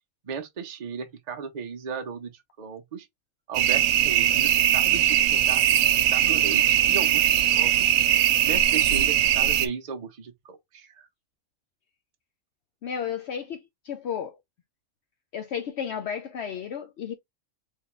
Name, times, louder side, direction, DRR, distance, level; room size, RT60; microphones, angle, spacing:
voice 1, 0.2-3.1 3.5-5.6 6.1-7.9 8.4-11.1, right 6 dB, 45° right, 0.6 m, -36 dB
sound 1, 3.5-9.7, right 11 dB, 90° right, 1.0 m, -21 dB
voice 2, 12.8-14.3 15.3-17.2, left 8 dB, 65° left, 0.8 m, -33 dB
3.6 x 3.3 x 3.2 m
omnidirectional pair, 1.3 m